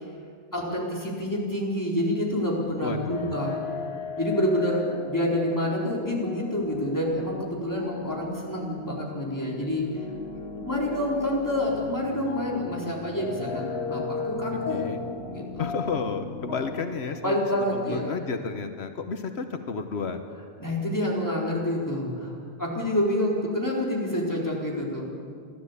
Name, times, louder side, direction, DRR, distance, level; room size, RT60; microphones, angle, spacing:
voice 1, 0.5-3.6 4.2-4.8 5.1-10.0 10.5-14.8 15.3-15.7 17.2-18.2 20.6-25.1, left 1 dB, 15° left, -3 dB, 4.3 m, -28 dB
voice 2, 2.8-3.4 14.7-15.0 15.6-17.4 17.7-20.2, left 5 dB, 90° left, 7 dB, 1.4 m, -31 dB
sound 1, 3.1-16.8, left 4 dB, 75° left, 1.5 m, -36 dB
29.0 x 12.5 x 8.4 m, 2.2 s
omnidirectional pair, 1.1 m